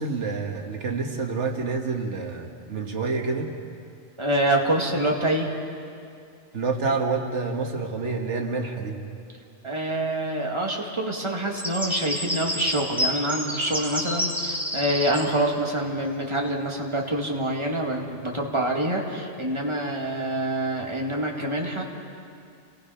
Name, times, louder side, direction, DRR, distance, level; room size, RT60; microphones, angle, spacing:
voice 1, 0.0-3.5 6.5-9.0, right 4 dB, 90° right, 2 dB, 1.8 m, -28 dB
voice 2, 4.2-5.5 9.6-21.8, right 1 dB, 25° right, 0 dB, 2.1 m, -26 dB
sound 1, 11.5-15.2, equal, ahead, 2.4 m, -28 dB
28.5 x 19.0 x 5.7 m, 2.4 s
omnidirectional pair, 1.2 m